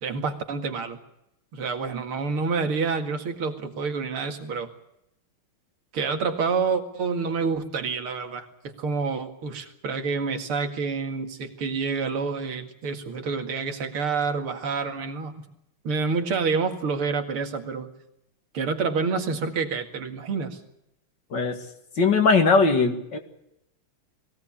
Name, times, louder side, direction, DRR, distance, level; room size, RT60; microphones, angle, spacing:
voice 1, 0.0-1.0 1.5-4.7 5.9-15.5 15.8-17.9 18.5-20.6, right 5 dB, 85° right, 6 dB, 2.9 m, -28 dB
voice 2, 21.3-21.6 22.0-23.2, left 4 dB, 55° left, 6 dB, 2.8 m, -20 dB
21.5 x 17.0 x 8.6 m, 0.82 s
omnidirectional pair, 2.3 m